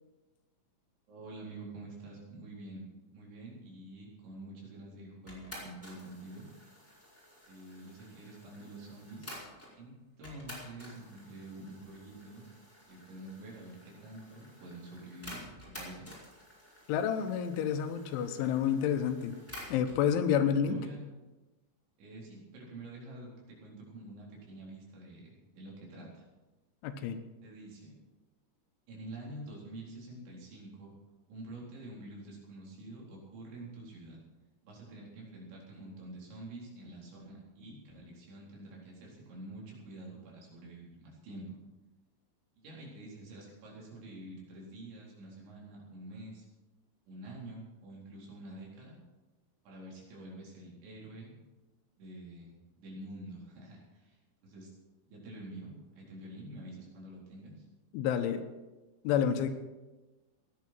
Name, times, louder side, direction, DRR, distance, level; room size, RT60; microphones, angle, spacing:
voice 1, 1.1-2.8 3.1-6.5 7.5-9.3 9.8-12.5 12.9-16.1 20.4-21.1 22.0-26.2 27.4-28.0 28.9-30.9 31.3-34.2 34.6-41.6 42.6-46.5 47.1-49.0 49.6-51.3 52.0-54.7 55.1-57.6, right 1 dB, 70° right, -3 dB, 6.4 m, -47 dB
sound 1, 5.3-9.7 10.2-20.0, equal, 5° left, 4.1 m, -51 dB
voice 2, 16.9-19.3 19.7-20.8 26.8-27.2 57.9-58.4 59.0-59.5, left 8 dB, 80° left, 8 dB, 3.3 m, -29 dB
17.0 x 11.0 x 6.1 m, 1.1 s
omnidirectional pair, 5.5 m